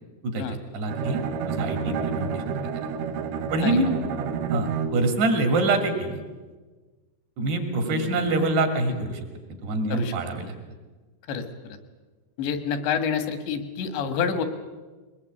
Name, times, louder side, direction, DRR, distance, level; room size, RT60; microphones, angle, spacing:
voice 1, 0.2-2.8 3.5-3.9 4.5-6.2 7.4-9.3 9.6-10.5, right 2 dB, 70° right, 5 dB, 4.7 m, -25 dB
Bowed string instrument, 0.9-5.3, right 6 dB, 85° right, 3.6 m, -29 dB
voice 2, 7.9-8.5 9.9-10.2 11.3-11.8 12.4-14.4, left 6 dB, 80° left, 9 dB, 3.9 m, -28 dB
22.0 x 20.5 x 8.6 m, 1.3 s
omnidirectional pair, 5.0 m